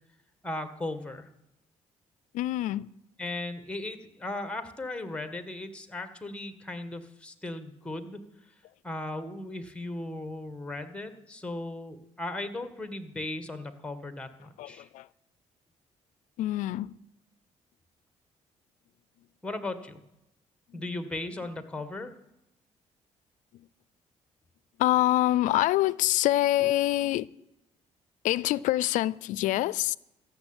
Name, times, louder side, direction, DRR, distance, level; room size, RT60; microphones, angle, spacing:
voice 1, 0.4-1.3 3.2-8.2 8.8-14.9 19.4-20.0 20.7-22.1, left 2 dB, 10° left, 1.7 m, -37 dB
voice 2, 2.3-2.9 14.6-15.1 16.4-17.0 20.7-20.8 24.8-27.3 28.2-30.0, left 15 dB, 85° left, 0.4 m, -25 dB
14.0 x 6.9 x 9.0 m
cardioid pair, 85°, 13 cm